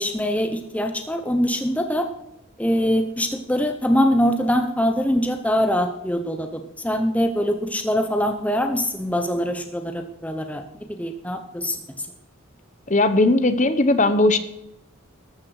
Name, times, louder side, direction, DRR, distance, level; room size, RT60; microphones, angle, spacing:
voice 1, 0.0-2.1 2.6-10.6 10.9-12.1, equal, 5° left, 6 dB, 0.7 m, -23 dB
voice 2, 12.9-14.4, left 2 dB, 35° left, 12 dB, 0.9 m, -18 dB
14.0 x 12.5 x 4.8 m, 0.86 s
head